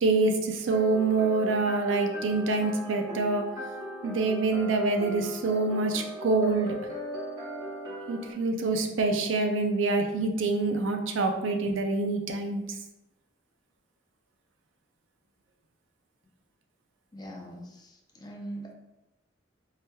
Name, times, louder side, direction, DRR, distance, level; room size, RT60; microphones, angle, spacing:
voice 1, 0.0-3.4 4.0-6.7 8.1-12.6, right 3 dB, 85° right, 5 dB, 0.5 m, -26 dB
sound 1, 0.7-8.3, equal, 20° right, 1.1 m, -38 dB
voice 2, 17.1-18.7, right 1 dB, 20° left, 0 dB, 0.5 m, -42 dB
4.7 x 2.9 x 2.2 m, 0.95 s
head